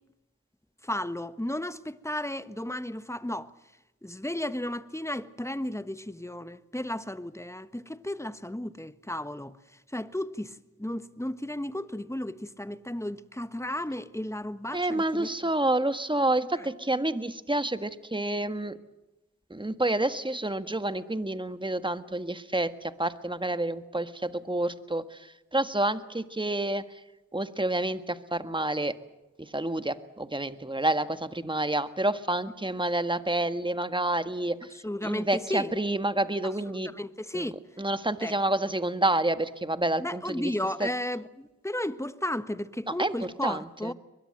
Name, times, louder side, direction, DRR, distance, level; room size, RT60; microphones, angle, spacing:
voice 1, 0.8-3.5 4.0-9.5 9.9-15.3 34.8-35.7 36.9-37.5 38.2-38.3 40.0-43.9, left 1 dB, 10° left, 1.3 m, -34 dB
voice 2, 14.7-18.7 19.5-27.0 27.3-28.9 29.4-34.7 35.0-36.9 37.3-37.5 37.8-40.5 40.8-40.9 43.0-43.9, right 1 dB, 15° right, 1.6 m, -29 dB
22.5 x 22.0 x 7.8 m
cardioid pair, 40°, 30 cm